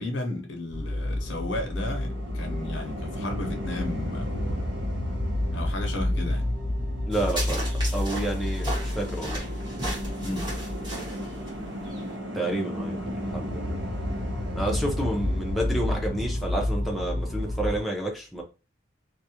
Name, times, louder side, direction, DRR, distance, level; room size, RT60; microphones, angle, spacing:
voice 1, 0.0-4.7 5.5-6.5 10.2-10.5, left 2 dB, 80° left, 0.7 m, -34 dB
sound 1, 0.7-17.8, left 1 dB, 75° right, 0.9 m, -30 dB
voice 2, 7.1-7.7 7.9-9.4 12.3-13.8 14.6-18.4, right 1 dB, ahead, 0.5 m, -30 dB
sound 2, 7.1-12.2, right 1 dB, 25° right, 0.9 m, -36 dB
2.3 x 2.1 x 2.8 m
head